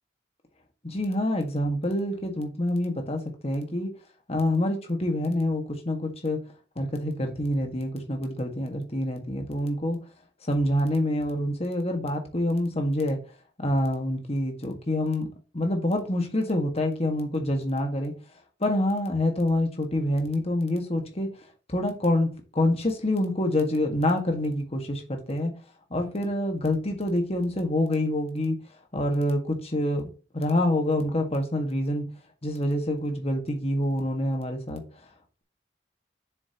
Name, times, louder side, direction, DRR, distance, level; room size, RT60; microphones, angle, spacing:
voice 1, 0.8-3.9 4.3-6.4 6.8-10.0 10.5-13.2 13.6-15.3 15.5-18.1 18.6-21.3 21.7-25.5 25.9-28.6 28.9-32.1 32.4-34.8, left 1 dB, 35° left, 1.7 m, -26 dB
7.0 x 7.0 x 2.9 m
head